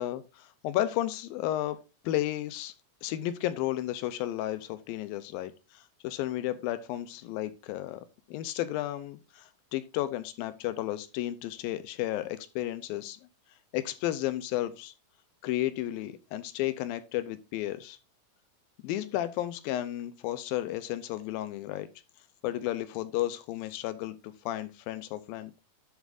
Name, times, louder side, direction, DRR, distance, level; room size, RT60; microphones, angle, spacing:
voice 1, 0.0-1.8 2.0-2.7 3.0-13.2 13.7-14.9 15.4-18.0 18.8-21.9 22.4-25.5, left 14 dB, 85° left, 2.4 m, -33 dB
10.5 x 7.3 x 2.5 m
omnidirectional pair, 4.3 m